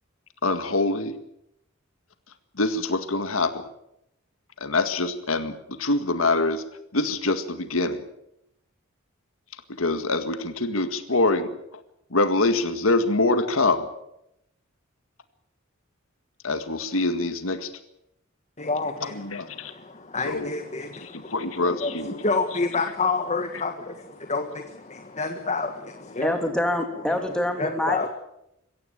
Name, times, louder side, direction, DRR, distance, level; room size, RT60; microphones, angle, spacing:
voice 1, 0.4-1.2 2.6-3.6 4.6-6.6 6.9-8.0 9.8-11.5 12.1-13.9 16.4-17.7 19.0-19.7 20.2-20.5 21.0-22.2, left 2 dB, 85° left, 9 dB, 1.9 m, -24 dB
voice 2, 18.6-26.3 27.6-28.1, left 3 dB, 35° left, 6 dB, 1.6 m, -29 dB
voice 3, 26.2-28.1, left 1 dB, 5° left, 5 dB, 3.2 m, -26 dB
23.0 x 16.5 x 8.8 m, 0.82 s
head